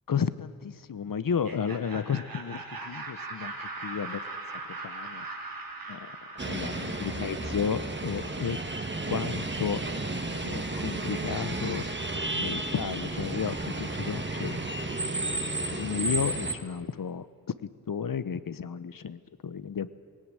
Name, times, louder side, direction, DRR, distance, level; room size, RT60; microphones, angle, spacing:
voice 1, 0.1-3.6 3.8-4.2 4.7-5.2 5.9-6.1 6.4-8.6 9.1-9.8 10.4-11.9 12.3-14.6 15.6-17.3 17.6-19.9, left 7 dB, 65° left, 16 dB, 0.9 m, -32 dB
Laughter, 1.3-8.1, right 3 dB, 65° right, 2.8 m, -40 dB
sound 1, 6.4-16.5, right 2 dB, 30° right, 1.9 m, -32 dB
18.5 x 17.5 x 8.9 m, 2.1 s
cardioid pair, 50°, 37 cm